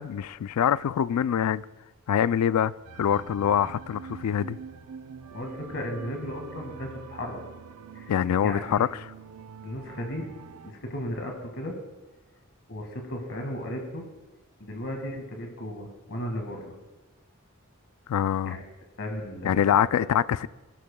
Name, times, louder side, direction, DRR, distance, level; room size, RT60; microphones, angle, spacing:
voice 1, 0.0-1.6 2.1-2.7 3.0-4.6 8.1-8.9 18.1-18.6 19.4-20.5, left 9 dB, 85° left, 0.3 m, -24 dB
sound 1, 2.8-10.7, right 6 dB, 85° right, 0.5 m, -45 dB
voice 2, 5.3-7.4 7.9-8.9 9.6-10.3 10.6-11.8 12.7-14.1 14.6-16.7 18.5-18.6 19.0-19.6, left 1 dB, 60° left, 1.9 m, -35 dB
20.0 x 12.5 x 2.3 m
head